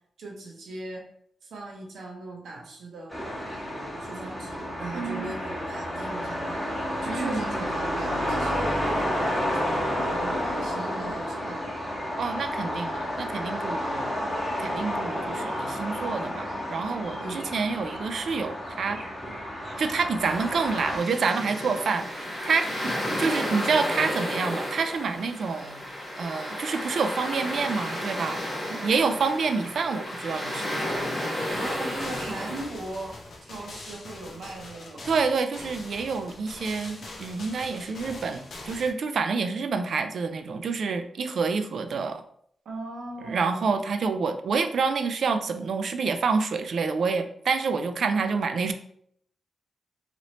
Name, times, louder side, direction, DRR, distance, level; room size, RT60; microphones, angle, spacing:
voice 1, 0.2-1.1 1.4-3.2 4.0-11.8 17.2-17.9 22.8-23.3 28.6-28.9 31.5-35.1 42.6-43.8, right 2 dB, 85° right, -1 dB, 0.8 m, -39 dB
sound 1, 3.1-21.0, equal, ahead, 1.4 m, -31 dB
voice 2, 4.9-5.3 7.1-7.5 12.2-14.1 14.6-19.0 19.8-22.8 23.2-25.8 26.2-28.4 28.8-31.1 35.0-42.2 43.2-48.7, right 5 dB, 60° right, 8 dB, 0.3 m, -28 dB
sound 2, 20.2-32.6, equal, 25° left, 1.5 m, -32 dB
sound 3, 31.5-38.9, left 2 dB, 60° left, 0.6 m, -43 dB
3.0 x 2.8 x 2.8 m, 0.67 s
wide cardioid pair, 150°, 0 cm